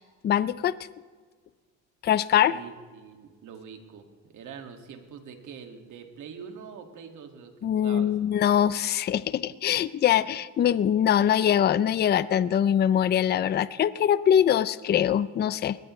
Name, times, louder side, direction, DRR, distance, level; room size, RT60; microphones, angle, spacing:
voice 1, 0.2-0.7 2.0-2.5 7.6-15.8, left 10 dB, 30° left, 17 dB, 0.4 m, -23 dB
voice 2, 2.5-8.1, right 6 dB, 65° right, 5 dB, 2.1 m, -44 dB
21.5 x 18.5 x 3.2 m, 1.5 s
cardioid pair, 140°, 33 cm